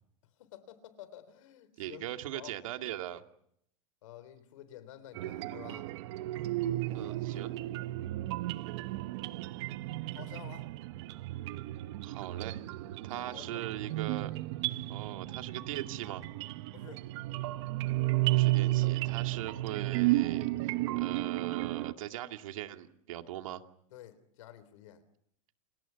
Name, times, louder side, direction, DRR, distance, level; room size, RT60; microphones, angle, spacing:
voice 1, 0.4-2.0 2.3-2.5 4.0-5.9 6.9-7.5 10.1-10.7 12.8-13.7 16.7-17.1 23.9-25.0, left 12 dB, 75° left, 3.7 m, -51 dB
voice 2, 1.8-3.2 6.9-7.5 12.0-12.6 13.0-14.3 14.9-16.2 18.2-23.6, right 13 dB, 85° right, 2.4 m, -40 dB
sound 1, 5.2-21.9, right 18 dB, 55° right, 1.1 m, -33 dB
sound 2, 14.2-20.4, right 10 dB, 15° right, 2.0 m, -53 dB
29.5 x 26.0 x 5.9 m
supercardioid pair, 170°, 17 cm